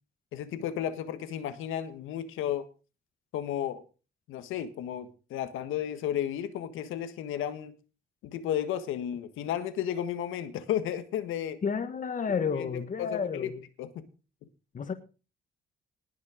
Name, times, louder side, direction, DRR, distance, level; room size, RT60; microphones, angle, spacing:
voice 1, 0.3-2.7 3.3-3.8 4.3-7.7 8.2-11.6 12.6-13.5 13.8-14.0, left 10 dB, 90° left, 1.6 m, -33 dB
voice 2, 11.6-13.6 14.7-14.9, left 6 dB, 40° left, 1.5 m, -31 dB
19.5 x 6.5 x 5.1 m
cardioid pair, 90°, 20 cm